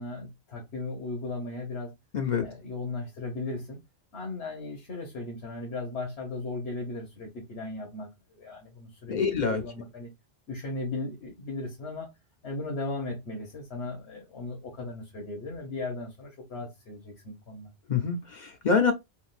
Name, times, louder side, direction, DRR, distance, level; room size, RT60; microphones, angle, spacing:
voice 1, 0.0-1.9 2.4-3.8 4.1-9.2 9.4-10.1 10.5-12.1 12.4-17.7, left 2 dB, 80° left, 1.4 m, -37 dB
voice 2, 2.1-2.5 9.1-9.6 17.9-18.9, left 5 dB, 50° left, 0.6 m, -25 dB
3.6 x 2.4 x 2.4 m
omnidirectional pair, 1.1 m